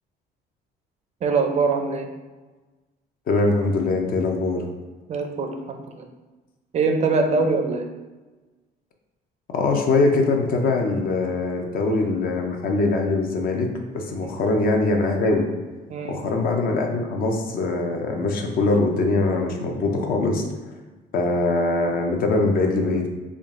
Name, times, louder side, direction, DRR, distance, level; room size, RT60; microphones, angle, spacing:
voice 1, 1.2-2.1 5.1-6.1 6.7-7.9 14.2-14.3 15.9-16.2, right 4 dB, 40° right, 4 dB, 0.5 m, -23 dB
voice 2, 3.3-4.6 9.5-15.5 16.0-20.4 21.1-23.1, left 3 dB, 60° left, 2 dB, 0.6 m, -22 dB
3.7 x 2.4 x 3.6 m, 1.2 s
cardioid pair, 110°, 17 cm